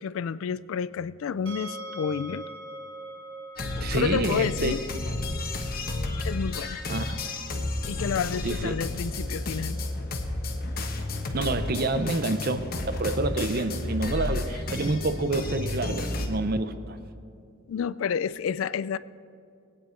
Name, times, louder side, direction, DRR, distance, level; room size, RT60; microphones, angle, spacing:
voice 1, 0.0-2.5 3.9-4.8 6.2-6.8 7.9-9.8 12.0-12.1 17.7-19.0, left 7 dB, 65° left, 17 dB, 0.3 m, -30 dB
sound 1, 1.5-14.4, equal, 70° right, 1.5 m, -45 dB
sound 2, 3.6-16.3, left 2 dB, 45° left, 1.1 m, -32 dB
voice 2, 3.8-4.7 6.9-7.2 8.4-8.8 11.3-17.0, right 2 dB, 45° right, 11 dB, 0.7 m, -28 dB
20.5 x 9.0 x 4.5 m, 2.5 s
head